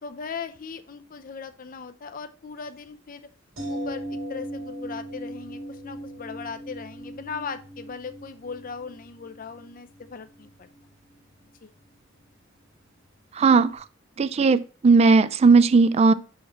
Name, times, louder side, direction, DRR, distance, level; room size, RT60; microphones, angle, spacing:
voice 1, 0.0-3.3 3.7-10.7 11.6-11.7, left 5 dB, 45° left, 0.5 m, -38 dB
sound 1, 3.6-13.4 13.7-13.8, right 1 dB, 80° right, 2.7 m, -39 dB
voice 2, 13.3-13.8 14.2-16.1, right 4 dB, 30° right, 0.3 m, -17 dB
5.7 x 3.0 x 5.6 m
head